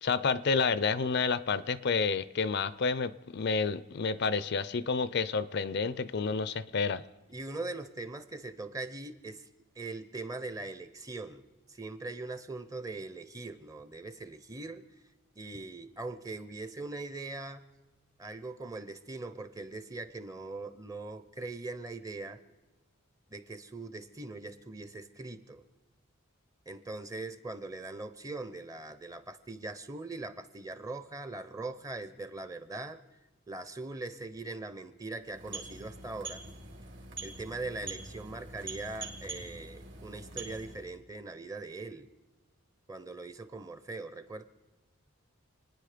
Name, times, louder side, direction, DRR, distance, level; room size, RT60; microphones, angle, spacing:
voice 1, 0.0-7.0, left 4 dB, 50° left, 0.5 m, -29 dB
voice 2, 7.3-14.8 15.4-17.6 18.2-22.4 23.3-25.6 26.7-33.0 33.5-36.4 37.2-42.1 42.9-44.4, right 2 dB, 15° right, 0.7 m, -41 dB
sound 1, 35.2-41.0, right 3 dB, 55° right, 2.5 m, -44 dB
28.5 x 9.9 x 5.1 m
head